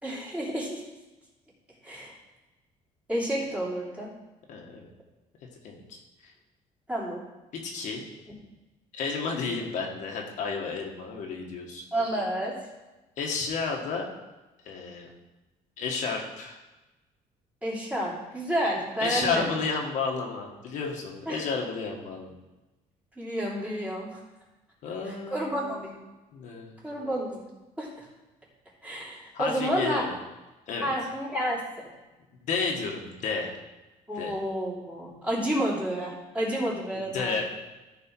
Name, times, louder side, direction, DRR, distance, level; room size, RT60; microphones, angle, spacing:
voice 1, 0.0-0.8 1.8-2.1 3.1-4.1 6.9-7.2 11.9-12.5 17.6-19.4 21.3-21.4 23.2-24.2 25.0-25.9 26.8-27.4 27.8-28.1 28.8-30.0 30.8-31.9 34.1-37.4, right 1 dB, 10° right, -6 dB, 3.1 m, -30 dB
voice 2, 4.5-4.9 5.6-6.3 7.6-8.0 8.9-11.8 13.2-14.1 14.6-15.1 15.8-16.6 19.0-22.3 24.8-26.0 26.3-26.8 29.3-30.1 30.7-30.9 32.4-33.6 34.1-34.4 37.1-37.4, left 4 dB, 65° left, 0 dB, 1.6 m, -32 dB
14.0 x 4.8 x 4.6 m, 1.1 s
cardioid pair, 135°, 13 cm